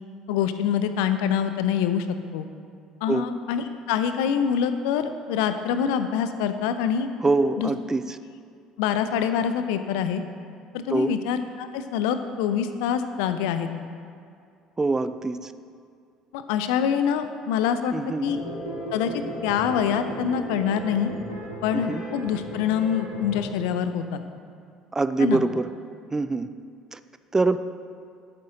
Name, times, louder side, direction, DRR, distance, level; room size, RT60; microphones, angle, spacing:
voice 1, 0.3-2.1 2.3-2.5 3.0-7.1 7.6-7.7 8.8-10.2 10.7-13.7 16.3-17.9 18.2-18.4 18.9-21.1 21.6-24.2 25.2-25.4, left 8 dB, 65° left, 10 dB, 0.6 m, -25 dB
voice 2, 7.2-8.2 10.9-11.1 14.8-15.5 17.9-18.3 21.7-22.0 24.9-25.7 26.1-26.5 26.9-27.0 27.3-27.6, right 3 dB, 20° right, 12 dB, 0.4 m, -24 dB
sound 1, 18.2-23.4, right 1 dB, 85° left, 1.8 m, -36 dB
11.5 x 9.0 x 3.9 m, 2.3 s
figure-of-eight pair, 55°, 3 cm